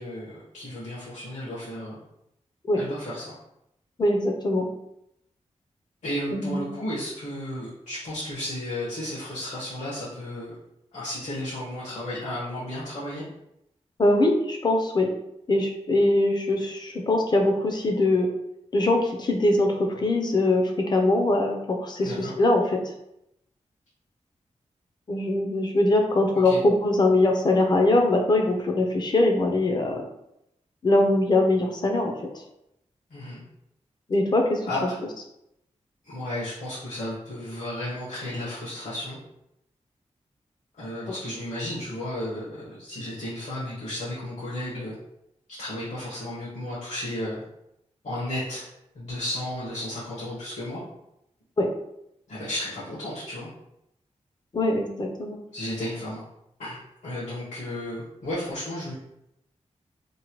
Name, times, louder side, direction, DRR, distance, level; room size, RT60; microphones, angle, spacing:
voice 1, 0.0-2.0 2.7-3.3 6.0-10.5 10.9-13.2 22.0-22.4 26.4-26.6 33.1-33.4 34.7-34.8 36.0-39.2 40.8-44.9 45.6-47.4 48.0-48.6 48.9-50.8 52.3-53.5 55.5-56.2 56.6-58.9, left 1 dB, 75° left, -8 dB, 1.0 m, -33 dB
voice 2, 4.0-4.7 6.3-6.7 14.0-15.1 15.5-18.3 18.7-22.9 25.1-30.1 30.8-32.4 34.1-34.9 51.6-51.7 54.5-55.4, left 2 dB, 35° left, 3 dB, 0.5 m, -22 dB
2.9 x 2.1 x 2.9 m, 0.82 s
wide cardioid pair, 110°, 12 cm